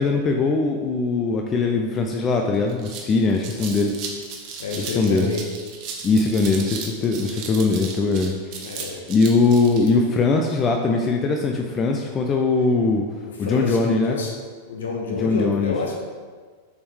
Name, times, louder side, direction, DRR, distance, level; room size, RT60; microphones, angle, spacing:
voice 1, 0.0-3.9 4.7-5.3 6.0-8.3 9.1-13.0 13.4-14.2 15.1-15.7, left 3 dB, 25° left, 3 dB, 0.5 m, -21 dB
sound 1, 2.1-2.2 2.5-9.9, right 5 dB, 40° right, 1.0 m, -35 dB
voice 2, 4.6-5.4 8.6-9.0 13.4-14.3 14.7-16.0, left 4 dB, 65° left, 0 dB, 1.1 m, -28 dB
6.7 x 4.3 x 3.5 m, 1.5 s
figure-of-eight pair, 90°, 0 cm